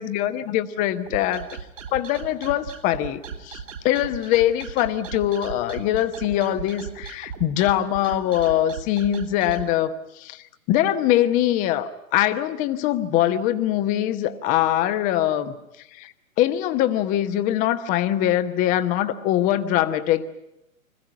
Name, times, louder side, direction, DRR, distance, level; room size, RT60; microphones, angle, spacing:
voice 1, 0.0-1.5 1.9-15.5 15.9-16.1 16.4-20.2, left 12 dB, 20° left, 11 dB, 1.0 m, -23 dB
sound 1, 1.1-9.7, right 7 dB, 60° right, 2.9 m, -37 dB
25.5 x 15.5 x 9.7 m, 0.86 s
figure-of-eight pair, 120°, 42 cm